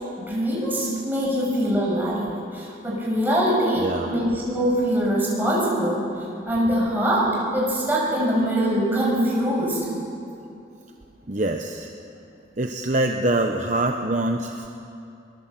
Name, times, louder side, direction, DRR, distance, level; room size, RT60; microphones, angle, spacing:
voice 1, 0.2-6.0 6.5-9.8, equal, 10° right, -4 dB, 6.5 m, -23 dB
voice 2, 3.8-4.2 11.3-11.9 12.6-14.7, right 1 dB, 40° right, 4 dB, 1.0 m, -24 dB
23.0 x 21.5 x 7.7 m, 2.6 s
head